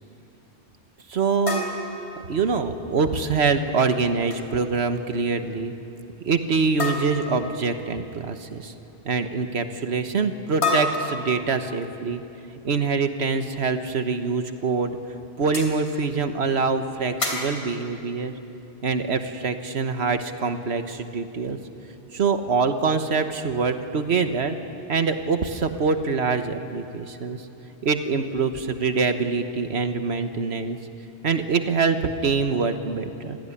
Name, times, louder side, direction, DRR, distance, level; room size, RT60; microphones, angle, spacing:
voice 1, 1.1-1.7 2.3-5.7 6.2-8.7 9.0-12.2 12.6-15.0 15.4-18.3 18.8-21.6 22.1-24.6 24.9-27.4 27.8-30.8 31.2-33.4, right 4 dB, 75° right, 8 dB, 1.5 m, -24 dB
sound 1, 1.5-2.8 4.1-4.5 4.7-5.0 5.3-5.4 6.8-7.5 10.6-11.8 13.8-13.9 14.5-14.6 15.5-15.8 17.2-17.7, left 2 dB, 75° left, 3.6 m, -29 dB
25.5 x 17.0 x 9.9 m, 2.8 s
omnidirectional pair, 1.1 m